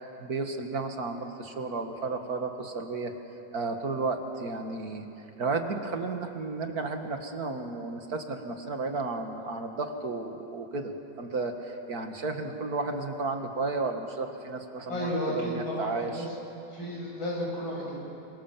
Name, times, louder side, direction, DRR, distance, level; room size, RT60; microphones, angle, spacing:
voice 1, 0.2-3.1 3.5-5.1 5.4-10.9 11.2-16.3, right 3 dB, 50° right, 5 dB, 2.3 m, -33 dB
voice 2, 14.9-16.3 16.7-18.0, equal, 90° left, -3 dB, 8.4 m, -32 dB
29.0 x 25.5 x 7.5 m, 2.9 s
omnidirectional pair, 2.1 m